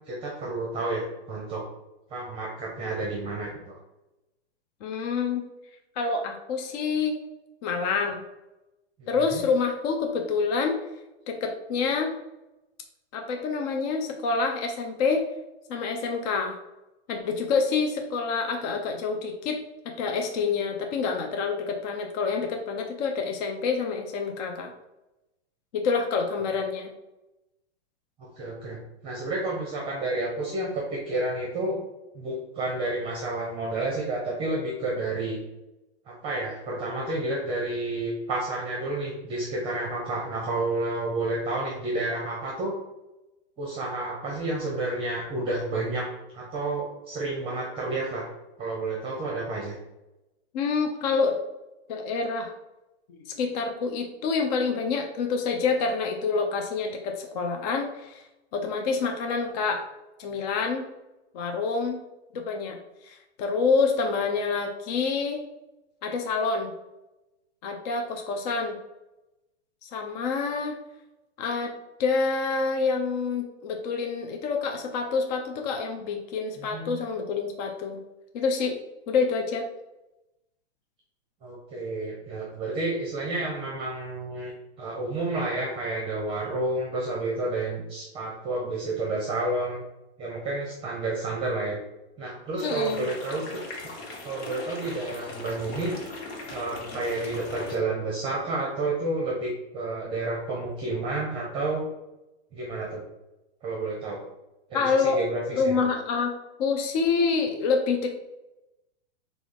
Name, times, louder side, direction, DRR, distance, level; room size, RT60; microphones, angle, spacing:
voice 1, 0.1-1.6 2.1-3.8 9.0-9.4 28.2-28.8 29.0-31.8 32.1-35.4 36.1-42.7 43.6-46.1 46.3-48.3 48.6-49.7 76.6-77.0 81.4-84.5 84.8-89.8 90.2-91.8 92.2-93.6 94.2-95.9 96.5-101.8 102.5-103.0 103.6-104.2 104.7-105.8, right 2 dB, 15° right, -3 dB, 0.8 m, -30 dB
voice 2, 4.8-5.4 6.0-7.2 7.6-8.2 9.1-10.8 11.3-12.1 13.1-15.2 15.7-16.6 17.1-19.6 19.8-24.7 25.7-26.9 50.5-51.4 51.9-52.5 53.2-58.2 58.5-59.8 60.2-60.9 61.3-62.0 62.3-62.8 63.0-65.4 66.0-66.7 67.6-68.8 69.8-70.8 71.4-71.7 72.0-78.0 78.3-78.8 79.1-79.6 92.6-93.1 104.7-105.2 105.5-106.3 106.6-108.1, left 4 dB, 40° left, 4 dB, 0.5 m, -27 dB
sound 1, 92.6-97.8, left 2 dB, 65° left, 1.4 m, -39 dB
5.9 x 2.4 x 3.3 m, 0.98 s
hypercardioid pair, 145°, 34 cm